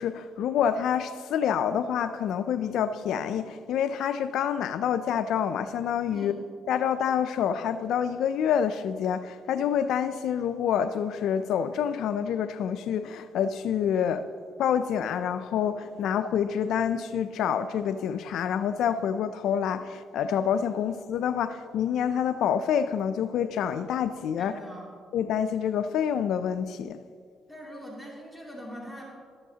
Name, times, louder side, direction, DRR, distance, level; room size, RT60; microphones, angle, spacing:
voice 1, 0.0-6.3 6.7-14.2 14.6-24.5 25.1-27.0, left 8 dB, 80° left, 0.4 m, -27 dB
voice 2, 24.4-24.9 27.5-29.0, equal, 5° right, 2.5 m, -42 dB
12.5 x 12.0 x 2.8 m
cardioid pair, 90°, 0 cm